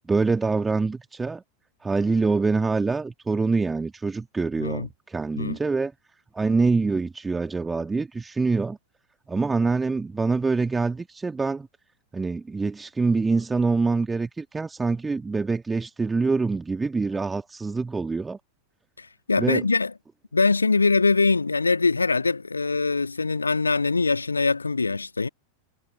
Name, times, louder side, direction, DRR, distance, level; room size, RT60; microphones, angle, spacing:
voice 1, 0.1-1.4 1.8-5.9 6.3-8.8 9.3-11.7 12.1-18.4 19.4-19.6, right 4 dB, 10° right, 2.0 m, -25 dB
voice 2, 19.0-19.9 20.3-25.3, left 4 dB, 80° left, 1.4 m, -23 dB
figure-of-eight pair, 90°, 0 cm